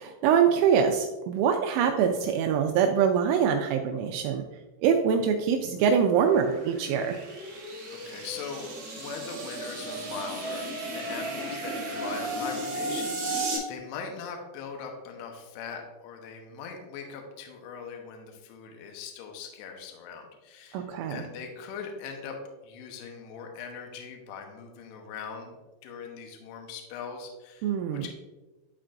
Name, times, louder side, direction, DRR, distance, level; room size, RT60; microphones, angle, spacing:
voice 1, 0.0-4.4 4.8-7.2 20.7-21.2 27.6-28.1, right 7 dB, 85° right, 4 dB, 2.7 m, -24 dB
sound 1, 5.6-13.6, right 2 dB, 70° right, 1.6 m, -35 dB
voice 2, 7.9-8.7 9.0-22.4 22.6-25.6 25.8-28.1, left 6 dB, 80° left, 3 dB, 2.4 m, -41 dB
11.5 x 4.4 x 2.5 m, 1.1 s
omnidirectional pair, 6.0 m